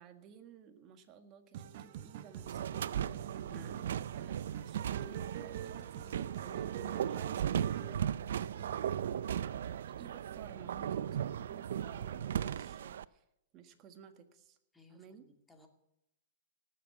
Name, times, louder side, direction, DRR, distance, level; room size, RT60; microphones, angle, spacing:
voice 1, 0.0-9.4 10.0-13.2 13.5-14.6 14.9-15.2, right 8 dB, 35° right, 7 dB, 1.6 m, -55 dB
sound 1, 1.5-7.9, right 10 dB, 60° right, 0.9 m, -46 dB
sound 2, 2.5-13.0, right 9 dB, 75° right, 0.4 m, -37 dB
voice 2, 9.2-9.6 14.7-15.7, left 3 dB, 10° left, 3 dB, 2.3 m, -59 dB
18.0 x 7.5 x 7.1 m, 0.85 s
hypercardioid pair, 130°, 0 cm